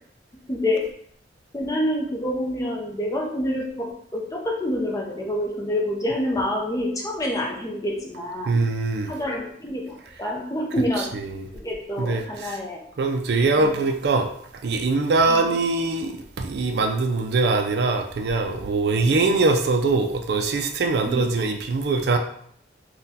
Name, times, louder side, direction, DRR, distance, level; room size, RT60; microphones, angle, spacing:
voice 1, 0.5-0.8 1.5-8.6 9.1-11.1 11.5-12.8 13.6-13.8 15.3-15.5 21.1-21.3, left 1 dB, 20° left, -1 dB, 0.5 m, -27 dB
voice 2, 8.5-9.1 11.1-11.5 12.0-12.6 13.0-14.3 14.6-22.2, right 3 dB, 65° right, 4 dB, 0.4 m, -22 dB
3.8 x 2.2 x 2.7 m, 0.64 s
head